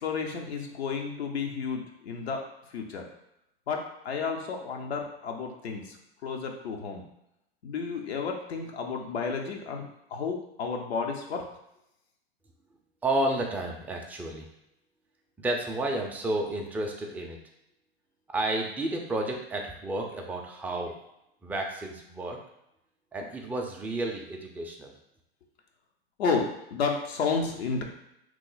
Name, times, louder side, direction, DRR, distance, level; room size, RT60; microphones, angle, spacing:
voice 1, 0.0-2.4 2.7-3.0 3.7-7.0 7.6-11.4 26.2-27.8, left 5 dB, 90° left, 2 dB, 0.7 m, -32 dB
voice 2, 13.0-14.5 15.4-17.4 18.3-20.9 21.4-22.4 23.1-24.9, right 1 dB, 5° right, 0 dB, 0.3 m, -31 dB
3.0 x 2.0 x 3.8 m, 0.82 s
hypercardioid pair, 105°, 31 cm